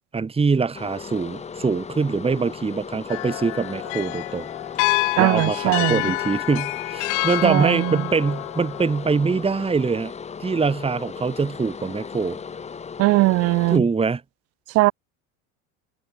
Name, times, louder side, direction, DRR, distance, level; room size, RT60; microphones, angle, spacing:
voice 1, 0.1-4.5 5.2-10.1 10.4-12.4 13.7-14.2, right 4 dB, 15° right, 2.0 m, -23 dB
sound 1, 0.7-13.8, left 6 dB, 15° left, 1.0 m, -37 dB
sound 2, 3.1-9.3, left 32 dB, 70° left, 0.5 m, -28 dB
voice 2, 5.2-6.0 7.4-8.0 13.0-13.8 14.7-14.9, right 21 dB, 40° right, 0.4 m, -19 dB
supercardioid pair, 110°, 39 cm